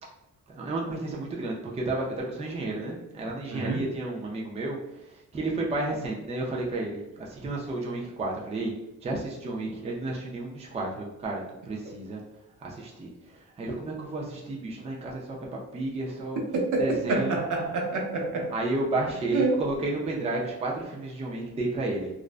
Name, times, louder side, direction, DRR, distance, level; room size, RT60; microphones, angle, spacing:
voice 1, 0.5-4.8 5.3-8.7 9.0-12.2 12.6-13.1 13.6-16.4 16.8-17.4 18.5-22.1, right 2 dB, 20° right, -2 dB, 0.4 m, -31 dB
voice 2, 3.5-3.9 17.1-18.5 19.3-19.7, right 3 dB, 70° right, 1 dB, 0.6 m, -27 dB
2.4 x 2.1 x 2.4 m, 0.90 s
wide cardioid pair, 150°, 32 cm